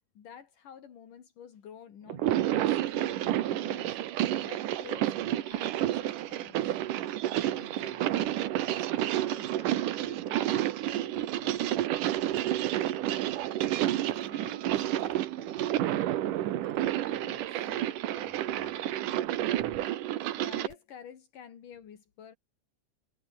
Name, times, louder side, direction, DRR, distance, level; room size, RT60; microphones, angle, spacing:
voice 1, 0.2-4.0 4.4-6.8 20.4-22.4, left 8 dB, 80° left, 4.2 m, -49 dB
sound 1, 2.1-20.7, right 13 dB, 80° right, 2.8 m, -30 dB
voice 2, 7.4-8.9 9.1-11.7 12.3-13.6 14.1-14.7 14.9-15.2 15.7-16.1 17.1-19.0, left 5 dB, 60° left, 5.5 m, -53 dB
sound 2, 12.9-19.9, right 11 dB, 60° right, 2.3 m, -46 dB
omnidirectional pair, 3.7 m